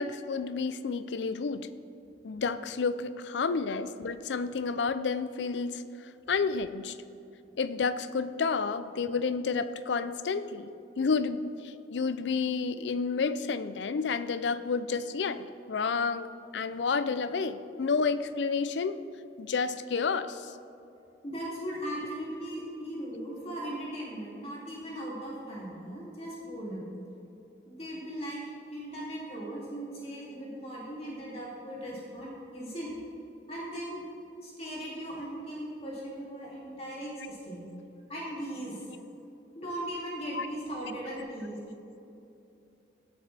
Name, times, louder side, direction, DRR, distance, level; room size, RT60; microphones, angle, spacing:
voice 1, 0.0-1.7 2.2-7.0 7.6-10.7 11.0-19.0 19.4-20.5 40.3-40.5, left 5 dB, 75° left, 13 dB, 0.5 m, -30 dB
voice 2, 21.2-26.9 27.7-28.4 28.7-32.9 33.5-34.0 34.4-37.6 38.1-38.8 39.5-41.6, right 1 dB, 35° left, -5 dB, 2.6 m, -38 dB
17.5 x 8.3 x 3.4 m, 2.8 s
head